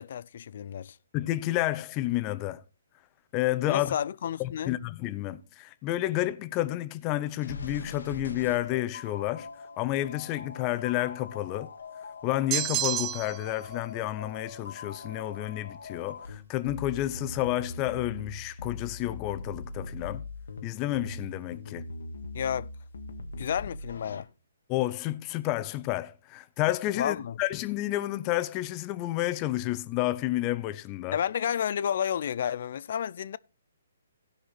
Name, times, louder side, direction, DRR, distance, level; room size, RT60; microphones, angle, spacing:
voice 1, 0.0-1.0 3.7-4.7 22.3-22.7 23.4-24.3 27.0-27.4 31.1-33.4, left 9 dB, 55° left, 0.5 m, -31 dB
voice 2, 1.1-2.6 3.3-3.9 4.4-9.5 9.8-11.7 12.2-20.2 20.6-21.9 24.7-31.2, left 15 dB, 25° left, 0.7 m, -30 dB
sound 1, 7.4-24.2, left 3 dB, 80° left, 1.3 m, -41 dB
sound 2, 12.5-13.5, right 14 dB, 25° right, 0.5 m, -29 dB
16.0 x 5.7 x 4.2 m
hypercardioid pair, 145°, 0 cm